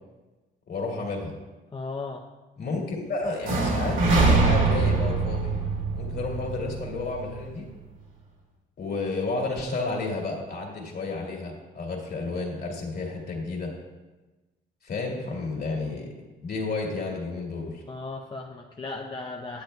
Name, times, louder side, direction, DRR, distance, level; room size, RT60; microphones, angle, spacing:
voice 1, 0.7-1.3 2.6-5.5 6.0-7.7 8.8-13.7 14.8-16.1 16.4-17.8, left 3 dB, 55° left, -1 dB, 2.6 m, -31 dB
voice 2, 1.7-2.2 17.9-19.6, left 3 dB, 25° left, 0 dB, 0.7 m, -36 dB
sound 1, 3.4-7.4, right 3 dB, 75° right, 2.3 m, -23 dB
10.5 x 8.8 x 2.3 m, 1.2 s
cardioid pair, 90°, 20 cm